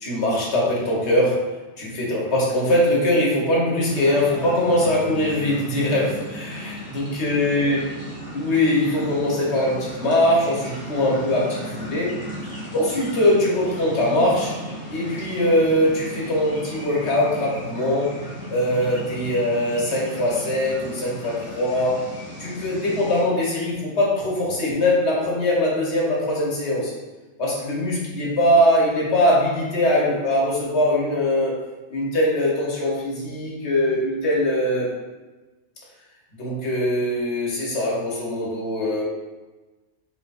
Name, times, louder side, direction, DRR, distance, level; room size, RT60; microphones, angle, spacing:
voice 1, 0.0-1.5 1.8-7.8 8.3-12.2 12.7-14.6 14.9-18.1 18.5-22.0 22.4-26.9 27.4-31.6 31.9-34.9 36.4-39.0, left 1 dB, 60° left, -4 dB, 1.3 m, -22 dB
sound 1, 3.9-23.2, equal, 10° right, 1.0 m, -36 dB
5.3 x 2.9 x 2.5 m, 1.2 s
omnidirectional pair, 1.4 m